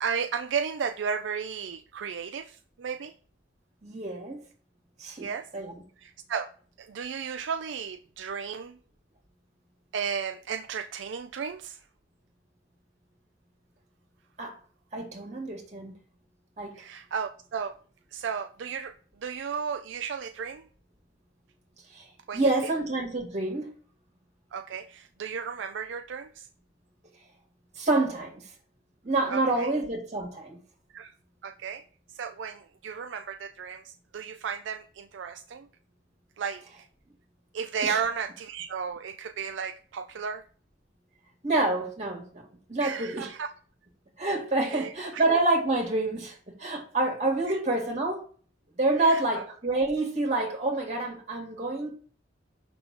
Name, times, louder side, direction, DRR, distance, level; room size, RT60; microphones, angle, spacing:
voice 1, 0.0-3.1 5.2-5.5 6.0-6.5 6.8-8.8 9.9-11.8 16.7-17.7 18.1-18.9 19.2-20.6 22.3-22.5 24.5-26.5 29.3-29.7 30.9-31.1 31.4-31.8 32.1-35.7 36.4-36.9 37.5-40.4 42.8-43.5 44.7-45.2 47.5-47.6 49.0-49.4, right 6 dB, 70° right, 0.4 m, -34 dB
voice 2, 3.8-4.4 5.0-5.7 14.4-14.5 14.9-15.9 16.6-16.7 21.9-22.1 22.3-23.7 27.8-28.3 29.0-30.6 37.8-38.0 41.4-42.4 42.7-43.3 44.2-48.2 48.8-52.0, right 2 dB, 40° right, 2.2 m, -27 dB
5.7 x 3.9 x 5.8 m
head